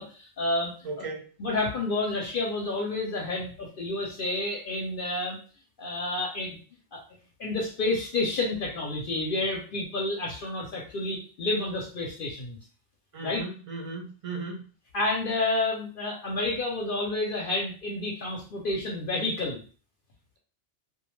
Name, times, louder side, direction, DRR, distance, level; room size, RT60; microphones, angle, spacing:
voice 1, 0.0-1.1 1.4-5.4 5.8-6.6 6.9-7.0 7.4-12.6 13.2-13.4 14.9-19.6, left 2 dB, 60° left, -1 dB, 0.7 m, -30 dB
voice 2, 0.8-1.2 13.1-14.6, right 3 dB, 40° right, 0 dB, 0.5 m, -36 dB
2.3 x 2.2 x 3.0 m, 0.38 s
omnidirectional pair, 1.2 m